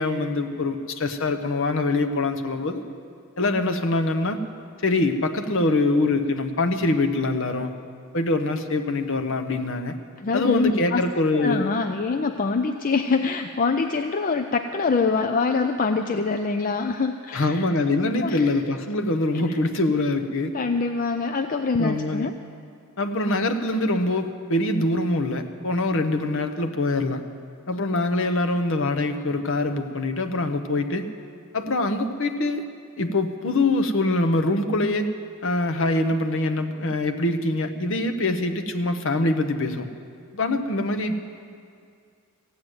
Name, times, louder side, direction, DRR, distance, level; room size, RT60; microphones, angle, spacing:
voice 1, 0.0-2.8 3.4-4.4 4.8-7.7 8.1-9.9 10.3-11.7 17.3-20.6 21.8-22.3 23.0-27.2 27.7-31.1 31.5-32.6 33.0-35.1 35.4-39.9 40.3-41.4, left 2 dB, 60° left, 7 dB, 0.9 m, -24 dB
voice 2, 10.2-11.0 11.3-17.6 18.2-18.5 19.3-19.6 20.5-22.3, left 4 dB, 40° left, 7 dB, 0.4 m, -24 dB
15.5 x 9.1 x 8.0 m, 2.3 s
head